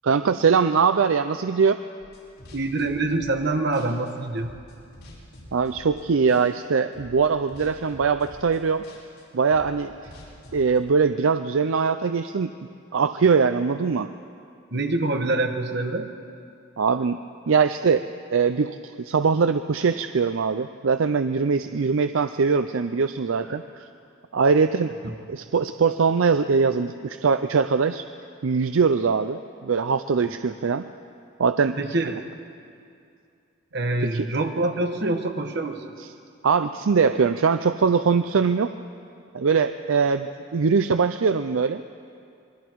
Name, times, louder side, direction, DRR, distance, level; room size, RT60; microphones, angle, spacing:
voice 1, 0.0-1.8 5.5-8.8 9.3-9.9 10.5-12.5 12.9-14.1 16.8-17.2 17.5-18.0 18.3-23.8 24.3-24.9 25.3-28.0 28.4-30.9 31.4-31.8 34.1-34.3 36.0-36.1 36.4-38.7 39.3-41.8, right 5 dB, 70° right, 10 dB, 0.5 m, -22 dB
sound 1, 2.0-3.5 3.7-6.0 6.3-6.7 6.9-10.8, equal, 85° left, 6.6 m, -46 dB
voice 2, 2.5-4.5 14.7-16.1 23.5-23.6 31.8-32.2 33.7-35.8, right 2 dB, 50° right, 4 dB, 1.4 m, -25 dB
26.5 x 21.5 x 4.7 m, 2.5 s
head